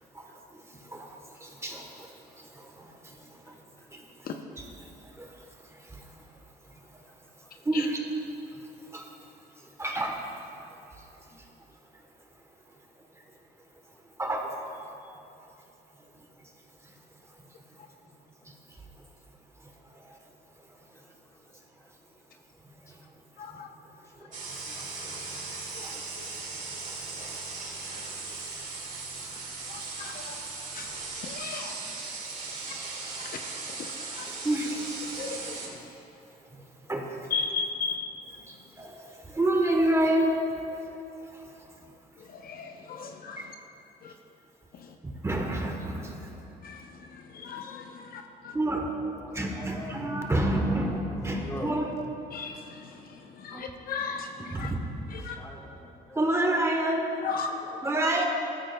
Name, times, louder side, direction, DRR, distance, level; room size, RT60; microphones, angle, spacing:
voice 1, 0.1-3.6 3.9-6.3 6.7-6.8 7.6-8.0 8.6-9.1 9.6-10.2 10.5-10.7 11.0-11.4 11.9-12.0 14.2-14.6 16.4-16.5 16.8-17.0 18.4-18.5 19.0-19.1 19.6-20.2 20.7-20.8 22.6-23.0 23.5-23.6 24.1-28.1 28.5-28.6 32.4-32.7 34.2-35.2 36.5-37.3 38.5-40.4 40.7-40.9 41.2-41.7 43.4-43.5 45.0-46.3 48.5-48.9 49.3-52.0 53.5-53.6 54.5-54.8 56.1-57.1 57.8-58.2, right 1 dB, 15° right, 2 dB, 1.1 m, -31 dB
sound 1, 24.3-35.7, right 3 dB, 45° right, 2.1 m, -38 dB
voice 2, 29.7-30.3 30.7-30.9 31.2-31.7 33.8-33.9 34.2-34.3 35.2-35.6 37.3-38.1 42.4-43.4 44.0-44.1 46.6-46.8 47.3-47.8 48.1-48.5 52.3-52.9 53.4-54.7 55.2-55.4 57.2-57.5, left 5 dB, 60° left, 4 dB, 0.8 m, -35 dB
voice 3, 49.2-50.0 51.2-51.8 55.4-56.2 57.3-57.8, left 1 dB, 15° left, -1 dB, 1.5 m, -41 dB
14.0 x 13.0 x 2.3 m, 2.8 s
cardioid pair, 110°, 18 cm